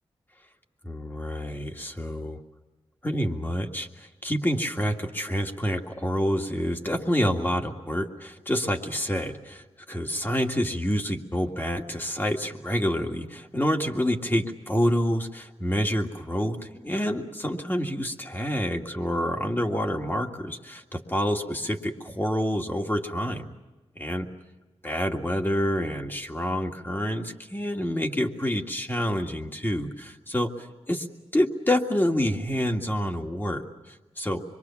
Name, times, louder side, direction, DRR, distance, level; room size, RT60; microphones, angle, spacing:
voice 1, 0.8-2.4 3.0-23.5 24.0-24.3 24.8-31.1 31.3-34.4, equal, 20° left, 2 dB, 2.0 m, -28 dB
25.5 x 23.0 x 7.2 m, 1.1 s
wide cardioid pair, 100°, 10 cm